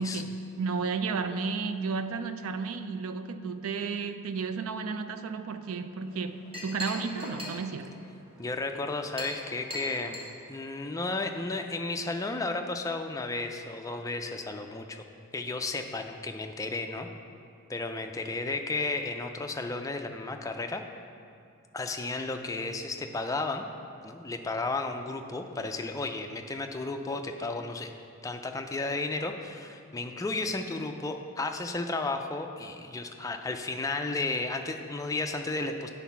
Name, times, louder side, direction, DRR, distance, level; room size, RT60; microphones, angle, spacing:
voice 1, 0.0-8.0, right 4 dB, 70° right, 10 dB, 0.4 m, -33 dB
Chink clink, 6.0-11.4, left 1 dB, 25° right, 1.3 m, -42 dB
voice 2, 8.4-10.2 10.5-15.0 15.3-17.1 17.7-20.8 21.7-23.6 24.0-27.9 28.2-35.9, left 3 dB, 15° left, 5 dB, 0.4 m, -33 dB
9.1 x 4.0 x 5.7 m, 2.4 s
head